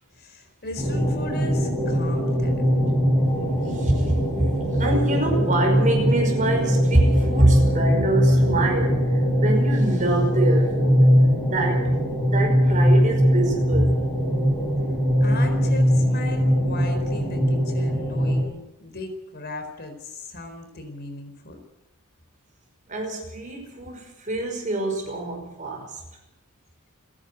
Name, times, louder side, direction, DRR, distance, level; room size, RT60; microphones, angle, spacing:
voice 1, 0.1-3.0 15.2-21.6, left 2 dB, 45° left, 6 dB, 4.2 m, -37 dB
sound 1, 0.8-18.4, equal, 10° left, 6.8 m, -21 dB
voice 2, 3.7-4.5 4.7-11.0 11.4-11.9 12.2-13.9 22.9-26.0, right 2 dB, 35° right, 2 dB, 5.5 m, -25 dB
30.0 x 11.0 x 8.0 m, 0.91 s
head